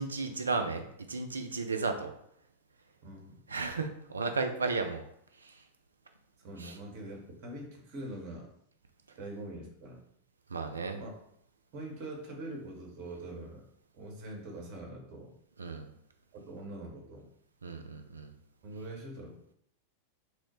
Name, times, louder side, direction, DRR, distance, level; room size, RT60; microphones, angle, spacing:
voice 1, 0.0-2.1 3.5-5.0 5.4-5.6 6.6-6.8 10.5-11.0 15.6-15.9 17.6-18.3, right 4 dB, 75° right, 6 dB, 0.3 m, -34 dB
voice 2, 3.0-3.4 6.4-8.5 9.2-10.0 11.0-11.1 11.7-13.6 13.9-15.3 16.3-17.3 18.6-19.4, right 1 dB, 45° right, 1 dB, 0.7 m, -43 dB
3.0 x 2.1 x 2.9 m, 0.71 s
figure-of-eight pair, 90°, 0 cm